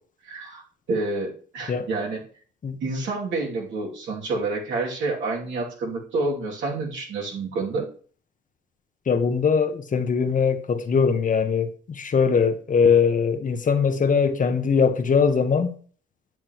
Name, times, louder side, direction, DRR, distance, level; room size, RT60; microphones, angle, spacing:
voice 1, 0.2-0.6 0.9-2.2 2.8-7.9, right 3 dB, 70° right, 2.7 m, -28 dB
voice 2, 9.1-15.7, left 6 dB, 40° left, 1.0 m, -21 dB
9.1 x 7.3 x 3.0 m
cardioid pair, 90°, 20 cm